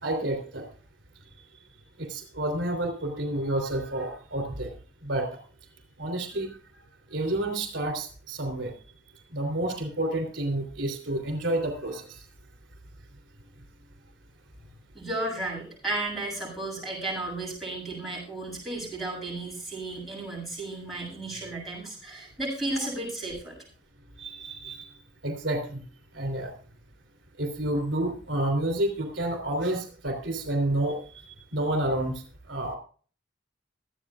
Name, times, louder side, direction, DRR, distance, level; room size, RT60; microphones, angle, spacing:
voice 1, 0.0-0.6 2.0-4.7 5.0-5.3 6.0-6.6 7.1-8.7 9.3-12.2 24.2-24.9 25.2-25.8 26.1-26.5 27.4-31.0 31.5-32.8, right 1 dB, 80° right, 6 dB, 3.2 m, -29 dB
voice 2, 14.9-23.6, right 2 dB, ahead, -3 dB, 7.7 m, -33 dB
25.0 x 8.6 x 2.5 m, 0.41 s
head